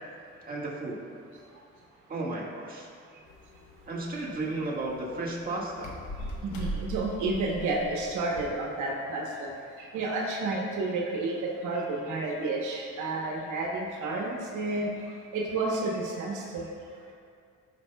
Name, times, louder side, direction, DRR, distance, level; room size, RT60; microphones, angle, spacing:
voice 1, 0.4-1.0 2.1-2.9 3.9-5.9, right 2 dB, 30° right, -4 dB, 1.7 m, -33 dB
sound 1, 3.3-8.5, equal, 90° left, 1.1 m, -40 dB
voice 2, 6.4-9.5 9.8-14.9 15.3-16.6, right 2 dB, 80° right, -1 dB, 1.0 m, -31 dB
13.5 x 5.4 x 2.2 m, 2.3 s
cardioid pair, 90°, 30 cm